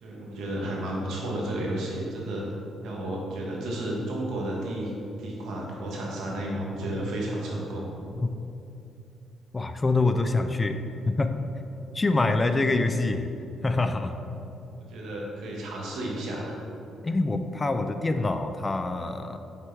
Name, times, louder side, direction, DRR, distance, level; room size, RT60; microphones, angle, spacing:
voice 1, 0.0-2.4 2.8-4.9 5.2-8.0 14.8-16.5, right 1 dB, 80° right, -2 dB, 1.7 m, -32 dB
voice 2, 9.5-10.8 11.1-11.3 11.9-13.3 13.6-14.2 17.0-19.4, left 3 dB, 25° left, 8 dB, 0.5 m, -25 dB
7.7 x 6.5 x 3.5 m, 2.7 s
cardioid pair, 90°, 0 cm